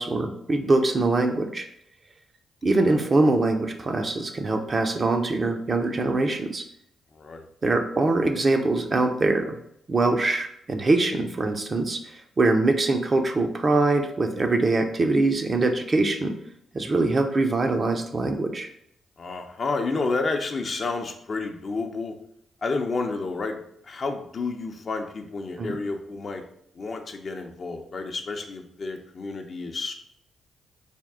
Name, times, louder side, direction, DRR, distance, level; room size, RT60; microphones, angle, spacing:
voice 1, 0.0-1.7 2.6-6.6 7.6-9.6 9.9-16.3 16.7-18.7 25.6-25.7, right 2 dB, 40° right, 4 dB, 0.6 m, -23 dB
voice 2, 19.2-22.2 22.6-26.4 26.7-29.9, left 3 dB, 50° left, 4 dB, 0.6 m, -30 dB
3.6 x 2.3 x 3.6 m, 0.71 s
supercardioid pair, 60°, 0 cm